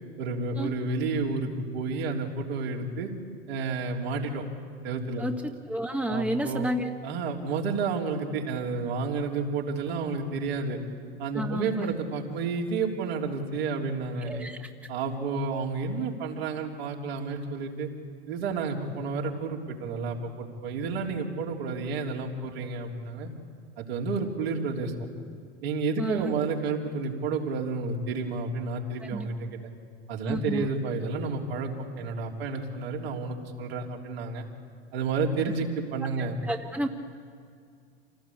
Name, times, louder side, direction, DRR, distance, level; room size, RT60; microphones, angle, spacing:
voice 1, 0.2-3.1 3.5-4.4 4.8-5.2 6.1-6.7 7.0-10.8 11.2-14.5 14.9-17.9 18.3-23.3 23.8-24.9 25.6-29.5 30.1-31.7 32.0-34.4 34.9-36.4, right 4 dB, 65° right, -1 dB, 3.8 m, -30 dB
voice 2, 5.7-6.9 11.3-11.9 14.2-14.7 26.0-26.3 29.0-29.3 30.2-30.7 36.2-36.9, equal, 5° right, 4 dB, 1.6 m, -31 dB
27.5 x 18.0 x 8.7 m, 2.2 s
hypercardioid pair, 90°, 33 cm